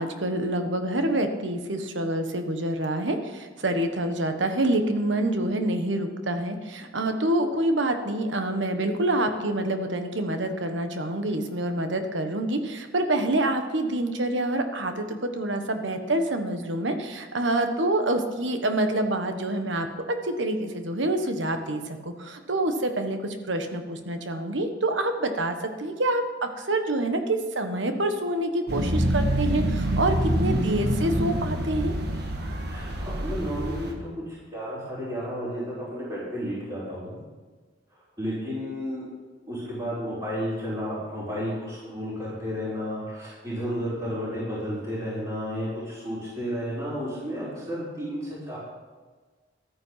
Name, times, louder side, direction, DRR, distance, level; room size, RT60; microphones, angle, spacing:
voice 1, 0.0-19.9 20.2-31.9, right 1 dB, 80° right, 7 dB, 1.3 m, -27 dB
sound 1, 28.7-33.9, right 1 dB, 60° right, 1.7 m, -26 dB
voice 2, 32.7-37.2 37.9-39.1 39.5-48.6, equal, 25° right, -12 dB, 4.8 m, -32 dB
13.0 x 9.4 x 5.8 m, 1.4 s
head